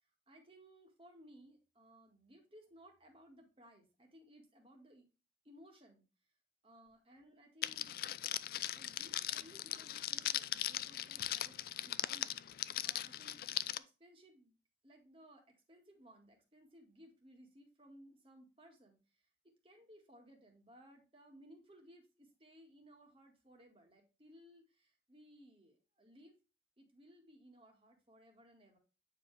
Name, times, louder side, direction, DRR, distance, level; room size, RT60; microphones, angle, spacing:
voice 1, 0.3-5.1 5.4-6.1 6.6-7.9 8.8-14.6 14.8-19.0 19.6-26.4 26.8-28.8, equal, 30° right, 2 dB, 1.9 m, -61 dB
Crackle, 7.6-13.8, left 13 dB, 55° left, 0.4 m, -39 dB
9.1 x 4.8 x 3.3 m, 0.31 s
head